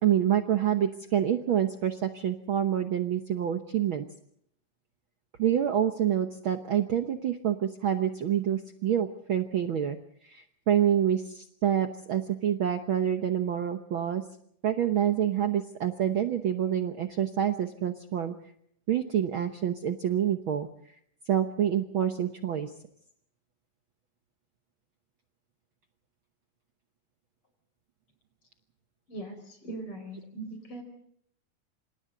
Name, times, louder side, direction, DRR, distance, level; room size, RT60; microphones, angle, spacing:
voice 1, 0.0-4.0 5.4-10.0 10.2-14.2 14.6-18.3 18.9-20.7 21.3-22.7, right 10 dB, 85° right, 6 dB, 1.1 m, -27 dB
voice 2, 29.1-30.8, right 2 dB, 40° left, 6 dB, 5.8 m, -40 dB
27.0 x 27.0 x 3.9 m, 0.68 s
omnidirectional pair, 3.8 m